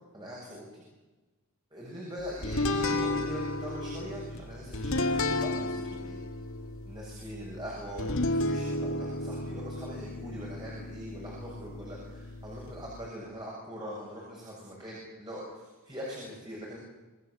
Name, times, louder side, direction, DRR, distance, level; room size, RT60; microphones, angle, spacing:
voice 1, 0.1-0.8 1.7-6.2 6.8-16.8, equal, 20° right, -4 dB, 7.6 m, -42 dB
sound 1, 2.4-13.1, left 2 dB, 65° left, 2.0 m, -33 dB
28.0 x 19.0 x 8.3 m, 1.2 s
head